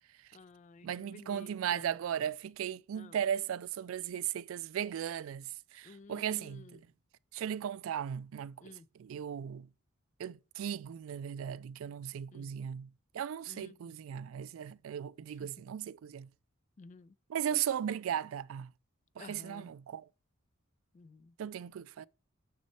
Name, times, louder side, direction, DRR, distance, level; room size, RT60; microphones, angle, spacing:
voice 1, 0.3-1.9 2.9-3.2 5.8-6.7 8.6-8.9 12.3-12.5 13.5-13.8 16.8-17.1 19.2-19.7 20.9-21.3, left 4 dB, 35° left, 0.3 m, -53 dB
voice 2, 0.8-6.8 7.3-9.7 10.2-12.9 13.1-16.3 17.3-18.7 19.2-20.1 21.4-22.1, right 9 dB, 75° right, 0.3 m, -37 dB
6.5 x 6.2 x 4.2 m
head